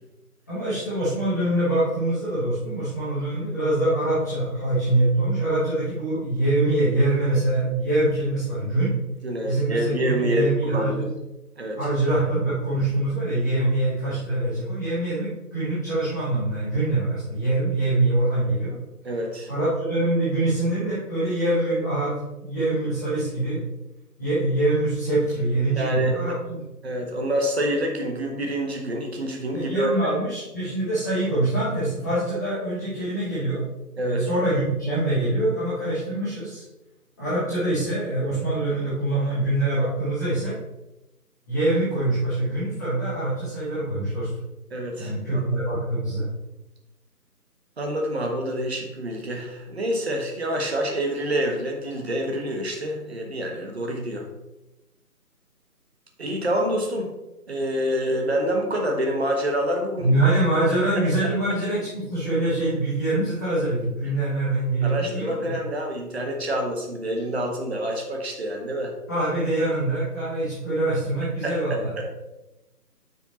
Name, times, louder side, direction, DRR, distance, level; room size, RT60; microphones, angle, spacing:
voice 1, 0.5-8.9 9.4-11.1 11.8-18.8 19.5-22.1 22.4-23.6 24.2-26.7 29.5-33.6 33.9-36.6 37.2-40.5 41.5-44.3 45.0-46.3 60.0-65.5 69.1-71.9, right 2 dB, 10° left, -13 dB, 1.2 m, -24 dB
voice 2, 9.2-11.0 11.6-11.8 19.0-19.5 25.8-26.1 26.8-30.1 34.0-34.2 44.7-45.7 47.8-54.3 56.2-57.1 57.5-60.3 61.2-61.3 64.8-68.9 71.4-72.2, equal, 40° right, 2 dB, 1.4 m, -27 dB
9.6 x 5.7 x 3.0 m, 0.98 s
figure-of-eight pair, 160°, 48 cm